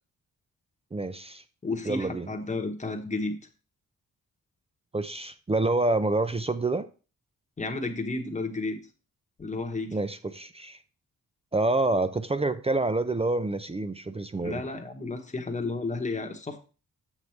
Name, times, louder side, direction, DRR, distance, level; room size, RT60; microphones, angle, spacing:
voice 1, 0.9-1.4 1.9-2.3 4.9-6.9 9.9-10.8 11.5-14.6, right 2 dB, 20° right, 11 dB, 0.4 m, -27 dB
voice 2, 1.6-3.4 7.6-8.9 9.4-10.0 14.4-16.6, left 3 dB, 20° left, 4 dB, 1.0 m, -32 dB
7.1 x 6.6 x 3.2 m, 0.34 s
wide cardioid pair, 120°, 36 cm